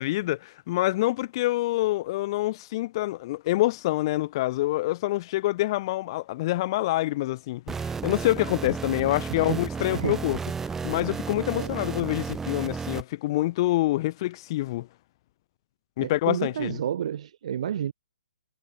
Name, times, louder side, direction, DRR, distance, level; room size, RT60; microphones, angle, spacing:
voice 1, 0.0-10.4 10.8-14.9 16.0-16.8, left 17 dB, 35° left, 1.7 m, -26 dB
sound 1, 7.7-13.0, right 5 dB, 10° right, 2.3 m, -33 dB
voice 2, 9.3-9.6 9.9-10.2 11.5-11.7 16.0-17.9, right 9 dB, 50° right, 1.4 m, -30 dB
figure-of-eight pair, 135°, 5 cm